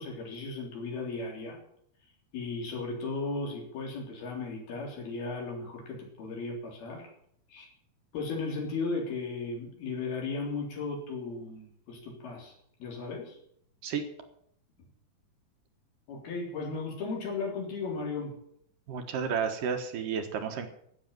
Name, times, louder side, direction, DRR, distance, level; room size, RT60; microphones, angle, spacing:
voice 1, 0.0-1.6 2.3-7.0 7.5-7.7 8.1-12.5 12.8-13.4 16.1-18.3, left 3 dB, 70° left, 0 dB, 5.6 m, -36 dB
voice 2, 18.9-20.7, right 6 dB, 65° right, 6 dB, 2.8 m, -31 dB
15.5 x 7.1 x 9.3 m, 0.69 s
omnidirectional pair, 4.5 m